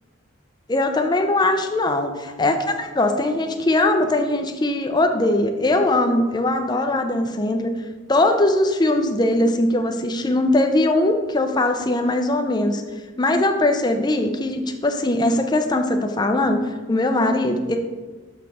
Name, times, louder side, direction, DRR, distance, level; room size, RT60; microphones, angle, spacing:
voice 1, 0.7-7.7 8.1-12.8 13.2-16.6 16.9-17.8, left 2 dB, 20° left, 5 dB, 0.5 m, -20 dB
6.3 x 5.9 x 3.5 m, 1.3 s
head